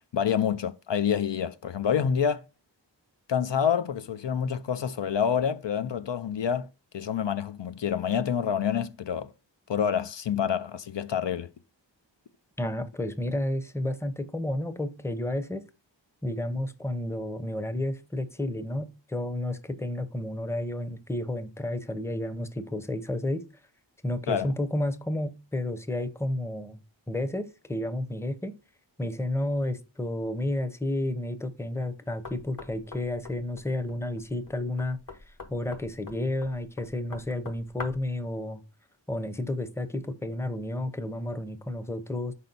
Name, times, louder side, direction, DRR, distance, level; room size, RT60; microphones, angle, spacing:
voice 1, 0.0-2.4 3.3-6.7 6.9-9.3 9.7-11.5 24.3-24.5, left 8 dB, 70° left, 0.5 m, -27 dB
voice 2, 12.6-15.6 16.2-23.4 24.0-26.8 27.1-28.6 29.0-35.0 35.3-38.6 39.1-42.3, left 1 dB, 5° left, 0.6 m, -31 dB
Knock, 32.2-38.2, left 3 dB, 45° left, 1.0 m, -45 dB
5.7 x 4.2 x 4.0 m
wide cardioid pair, 50°, 45 cm